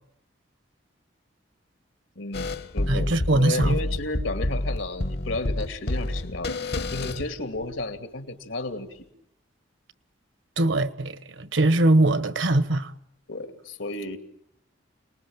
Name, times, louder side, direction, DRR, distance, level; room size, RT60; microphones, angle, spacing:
voice 1, 2.2-9.0 13.3-14.2, left 2 dB, 85° left, 2.6 m, -33 dB
sound 1, 2.3-7.8, left 1 dB, 55° left, 1.0 m, -29 dB
voice 2, 2.9-3.8 10.6-12.9, right 2 dB, 80° right, 1.3 m, -22 dB
28.0 x 20.0 x 8.9 m
head